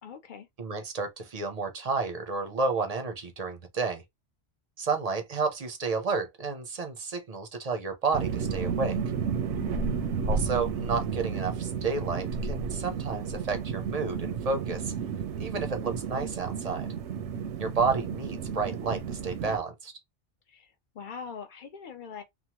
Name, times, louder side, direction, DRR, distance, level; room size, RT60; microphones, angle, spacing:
voice 1, 0.0-0.5 9.6-10.0 20.5-22.2, left 6 dB, 55° left, 0.7 m, -42 dB
voice 2, 0.6-4.0 4.8-9.0 10.3-14.9 15.4-16.9 17.6-19.9, right 4 dB, 45° right, 0.6 m, -31 dB
sound 1, 8.1-19.6, right 6 dB, 85° right, 0.9 m, -32 dB
3.0 x 2.1 x 2.8 m
omnidirectional pair, 1.1 m